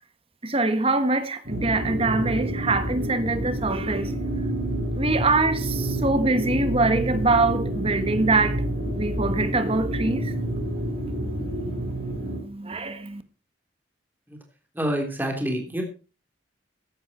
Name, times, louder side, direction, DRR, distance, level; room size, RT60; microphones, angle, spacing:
voice 1, 0.4-4.1 4.9-10.3 11.2-13.2, right 3 dB, 35° right, 1.4 m, -24 dB
sound 1, 1.4-12.4, right 1 dB, 60° right, 4.3 m, -28 dB
voice 2, 14.7-15.8, equal, 10° right, 3.5 m, -27 dB
15.0 x 10.5 x 4.4 m
head